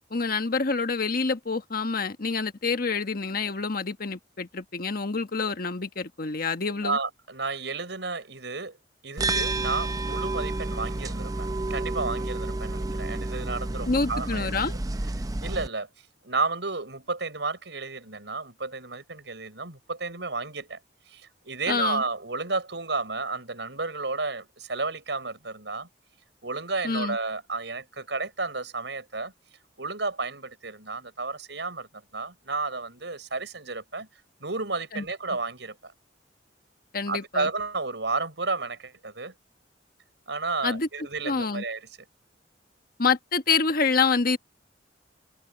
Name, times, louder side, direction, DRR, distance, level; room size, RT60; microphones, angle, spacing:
voice 1, 0.0-7.0 13.9-14.7 21.7-22.0 26.8-27.2 34.9-35.0 36.9-37.5 40.6-40.9 41.2-41.6 43.0-44.4, left 4 dB, 55° left, 1.3 m, -27 dB
voice 2, 6.7-8.8 9.0-14.5 15.4-20.8 21.1-25.9 26.4-29.3 29.8-34.1 34.4-35.9 37.1-39.3 40.3-41.9, right 3 dB, 75° right, 6.6 m, -32 dB
sound 1, 9.2-15.7, right 2 dB, 20° right, 0.6 m, -30 dB
head